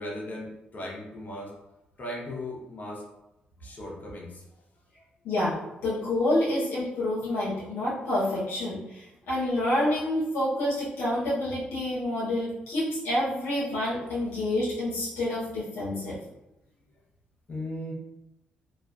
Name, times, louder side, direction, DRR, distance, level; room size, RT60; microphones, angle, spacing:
voice 1, 0.0-1.5 2.0-3.0 3.6-4.4 17.5-17.9, left 1 dB, 45° left, -3 dB, 0.8 m, -37 dB
voice 2, 5.2-5.6 5.8-16.2, left 1 dB, 80° left, -8 dB, 0.7 m, -28 dB
2.4 x 2.3 x 2.2 m, 0.93 s
supercardioid pair, 55°, 4 cm